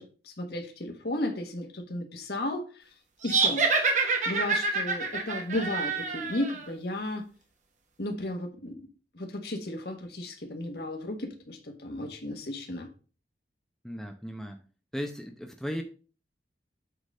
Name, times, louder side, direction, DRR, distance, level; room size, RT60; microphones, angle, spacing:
voice 1, 0.0-2.8 3.2-3.7 4.2-7.3 8.0-8.9 9.1-12.9, left 1 dB, 60° left, 3 dB, 1.5 m, -34 dB
sound 1, 3.2-6.6, right 4 dB, 45° right, 1.3 m, -27 dB
voice 2, 13.8-14.6 14.9-15.8, equal, ahead, 3 dB, 0.7 m, -36 dB
8.2 x 4.0 x 5.4 m, 0.37 s
head